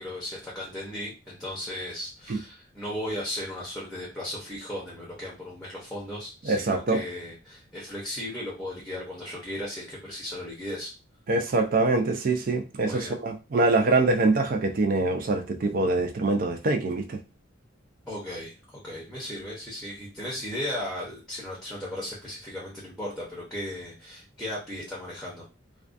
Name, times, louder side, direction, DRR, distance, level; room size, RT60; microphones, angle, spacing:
voice 1, 0.0-10.9 12.8-13.2 18.1-25.4, left 1 dB, ahead, 0.7 m, -36 dB
voice 2, 6.5-7.0 11.3-17.2, right 3 dB, 45° right, 0.3 m, -24 dB
2.4 x 2.2 x 2.5 m
head